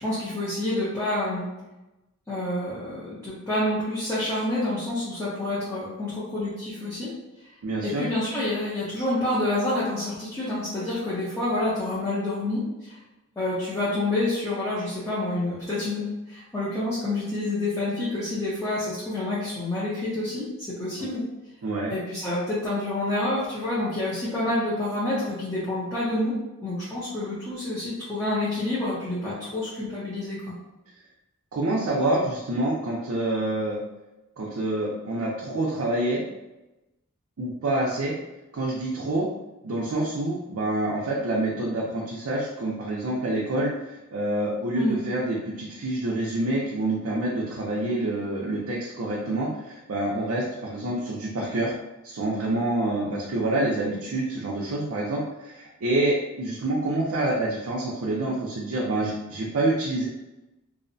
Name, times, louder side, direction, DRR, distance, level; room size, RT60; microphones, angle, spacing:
voice 1, 0.0-1.5 2.3-7.1 7.8-13.0 13.4-21.2 21.9-26.4 26.6-30.6 44.8-45.0, left 1 dB, 10° left, -10 dB, 0.6 m, -28 dB
voice 2, 7.6-8.1 21.6-21.9 31.5-33.8 34.4-36.2 37.4-38.1 38.5-39.3 39.6-43.7 44.1-51.7 52.0-60.1, right 1 dB, 70° right, -4 dB, 0.5 m, -27 dB
2.6 x 2.0 x 2.5 m, 1.0 s
head